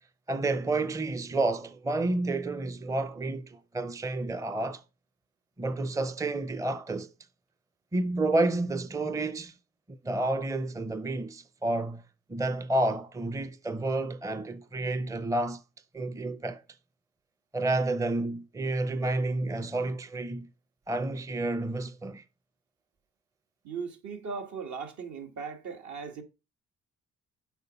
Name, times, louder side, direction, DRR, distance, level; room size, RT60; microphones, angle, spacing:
voice 1, 0.3-4.8 5.6-7.1 7.9-9.5 9.9-12.0 12.3-15.6 15.9-16.6 17.5-20.5 20.9-22.2, right 2 dB, 10° right, 0.6 m, -30 dB
voice 2, 23.6-26.2, right 5 dB, 70° right, 2.1 m, -38 dB
8.1 x 5.2 x 5.4 m
cardioid pair, 90°, 30 cm